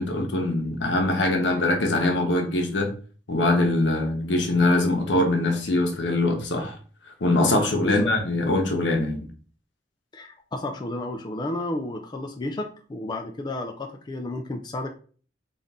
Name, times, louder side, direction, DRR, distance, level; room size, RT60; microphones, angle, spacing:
voice 1, 0.0-2.9 3.3-6.8 7.2-9.3, left 2 dB, 75° left, 0.8 m, -23 dB
voice 2, 7.7-8.1 10.1-14.9, left 1 dB, 25° left, 0.4 m, -32 dB
3.5 x 2.5 x 4.0 m
head